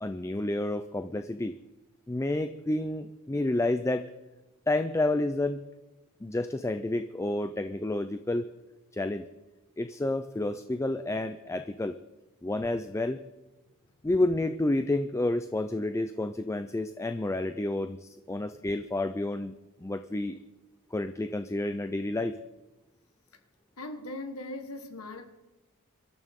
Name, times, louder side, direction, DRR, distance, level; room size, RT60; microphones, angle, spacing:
voice 1, 0.0-1.6 2.1-4.1 4.7-5.6 6.2-8.5 8.9-9.2 9.8-12.0 12.4-13.2 14.0-19.5 19.8-20.4 20.9-22.4, left 2 dB, 15° left, 10 dB, 0.4 m, -30 dB
voice 2, 23.8-25.3, left 1 dB, 75° left, 7 dB, 1.6 m, -39 dB
24.0 x 13.0 x 3.7 m, 1.1 s
head